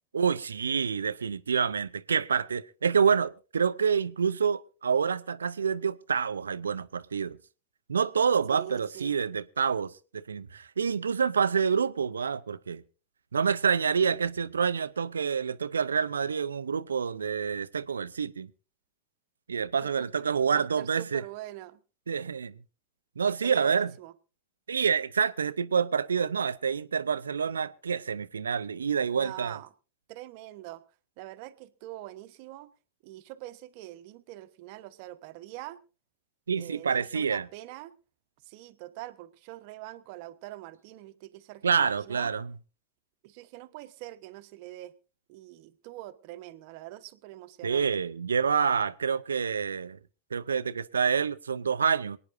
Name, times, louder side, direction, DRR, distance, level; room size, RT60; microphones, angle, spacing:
voice 1, 0.1-7.4 7.9-12.8 13.3-18.5 19.5-21.2 22.1-22.5 23.2-23.9 24.7-29.6 36.5-37.5 41.6-42.5 47.6-50.0 50.3-52.2, right 6 dB, 80° right, 0.6 m, -27 dB
voice 2, 8.5-9.1 19.8-21.8 23.3-24.1 29.1-29.7 30.1-30.8 31.2-32.7 33.0-35.8 36.5-37.9 38.4-42.3 43.2-44.9 45.3-48.0, right 16 dB, 50° right, 1.0 m, -44 dB
27.0 x 9.5 x 2.6 m
figure-of-eight pair, 95°, 0 cm